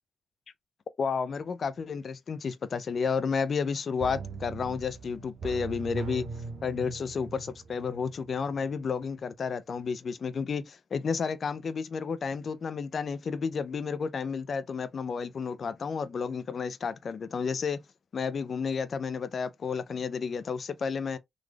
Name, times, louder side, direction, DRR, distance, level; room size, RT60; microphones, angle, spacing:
voice 1, 1.0-6.3 6.6-17.8 18.1-21.2, left 5 dB, 60° left, 0.4 m, -31 dB
sound 1, 4.0-8.7 9.0-9.1, right 4 dB, 70° right, 0.8 m, -40 dB
3.9 x 3.1 x 2.2 m
supercardioid pair, 55°, 0 cm